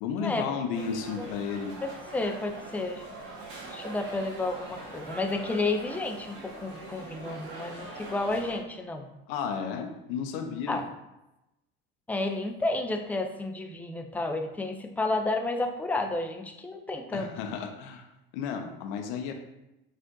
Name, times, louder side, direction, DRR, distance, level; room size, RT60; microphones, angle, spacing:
voice 1, 0.0-1.7 9.3-10.8 17.1-18.1 18.3-19.3, left 6 dB, 70° left, 5 dB, 0.7 m, -33 dB
sound 1, 0.7-8.6, right 2 dB, 45° right, 1.4 m, -43 dB
voice 2, 0.8-1.3 1.8-3.0 3.7-9.1 10.7-10.8 12.1-17.3, left 2 dB, 5° left, 4 dB, 0.5 m, -31 dB
5.1 x 2.5 x 3.8 m, 0.94 s
supercardioid pair, 95°, 29 cm